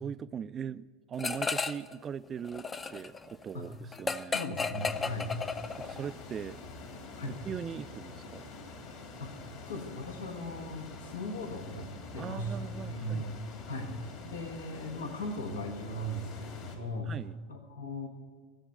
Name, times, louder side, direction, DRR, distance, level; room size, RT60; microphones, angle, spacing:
voice 1, 0.0-4.4 5.8-6.6 7.3-8.5 12.2-13.3 17.1-17.4, right 8 dB, 35° right, 16 dB, 0.4 m, -40 dB
sound 1, 1.2-1.9 2.2-6.1, left 4 dB, 20° left, 0.6 m, -34 dB
voice 2, 4.3-5.3 7.2-7.4 9.2-11.9 12.1-12.5 12.9-13.3 13.7-13.9 14.2-17.1 17.5-18.1, left 1 dB, 85° left, 3 dB, 1.5 m, -38 dB
sound 2, 4.8-16.8, left 3 dB, 55° left, 2.6 m, -46 dB
14.5 x 7.3 x 8.8 m, 1.5 s
hypercardioid pair, 85°, 0 cm